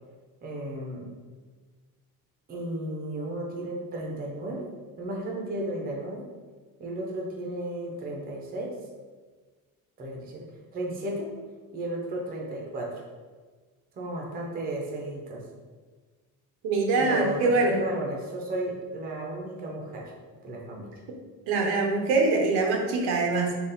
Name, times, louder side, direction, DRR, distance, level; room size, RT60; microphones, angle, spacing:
voice 1, 0.4-1.1 2.5-4.7 5.0-6.2 6.8-8.7 10.0-10.5 10.7-11.3 11.7-13.0 13.9-15.4 17.0-20.1 20.4-20.9, right 1 dB, 25° right, -1 dB, 0.5 m, -34 dB
voice 2, 16.6-17.8 21.5-23.6, right 3 dB, 85° right, 1 dB, 0.8 m, -24 dB
3.8 x 2.3 x 3.9 m, 1.4 s
cardioid pair, 180°, 37 cm